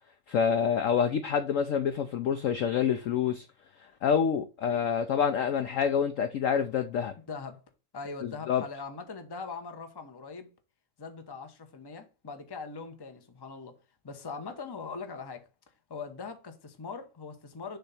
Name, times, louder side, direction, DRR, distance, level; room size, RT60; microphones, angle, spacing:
voice 1, 0.3-3.4 4.0-7.1 8.5-8.6, left 7 dB, 70° left, 0.7 m, -27 dB
voice 2, 7.2-7.6 7.9-10.5 11.0-13.8 14.0-15.5 15.9-17.8, left 4 dB, 20° left, 0.6 m, -41 dB
6.9 x 3.2 x 5.6 m
omnidirectional pair, 2.0 m